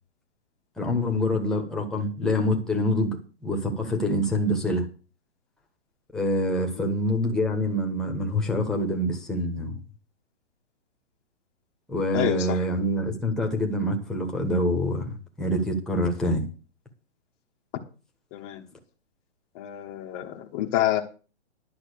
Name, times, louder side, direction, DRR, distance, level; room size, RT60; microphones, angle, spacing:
voice 1, 0.8-4.8 6.1-9.8 11.9-16.5, left 1 dB, ahead, 1.4 m, -26 dB
voice 2, 12.1-12.6 18.3-18.6 19.6-21.0, left 13 dB, 25° left, 1.1 m, -27 dB
11.0 x 5.8 x 8.3 m
hypercardioid pair, 155°, 36 cm